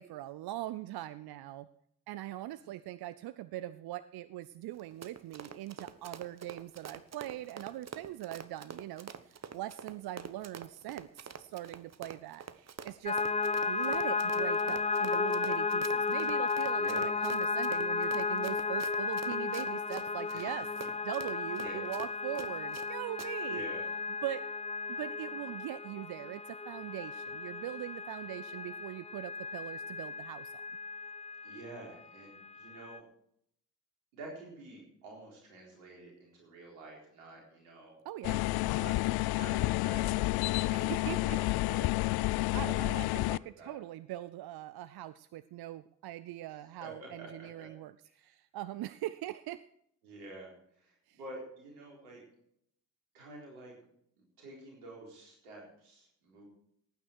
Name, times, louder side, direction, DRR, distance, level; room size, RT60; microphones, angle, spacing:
voice 1, 0.0-1.7 2.1-13.2 13.6-20.7 21.0-23.6 24.2-24.5 24.9-30.5 38.0-38.5 40.7-41.4 42.5-49.6 51.1-51.2, right 14 dB, 60° right, 15 dB, 0.7 m, -41 dB
Run, 4.7-22.9 23.2-23.3, right 7 dB, 35° right, 1.2 m, -46 dB
sound 1, 13.1-31.8 32.2-33.0, left 4 dB, 15° left, 0.6 m, -34 dB
voice 2, 16.8-17.1 20.3-20.5 21.6-21.9 23.5-23.9 31.4-33.0 34.1-38.0 38.6-43.7 46.5-47.5 48.0-48.3 50.0-52.2 53.1-53.7 54.4-56.4, right 2 dB, 85° right, -1 dB, 4.2 m, -49 dB
sound 2, 38.2-43.4, left 20 dB, 60° left, 0.5 m, -30 dB
18.5 x 9.3 x 4.6 m, 0.69 s
hypercardioid pair, 40°, 43 cm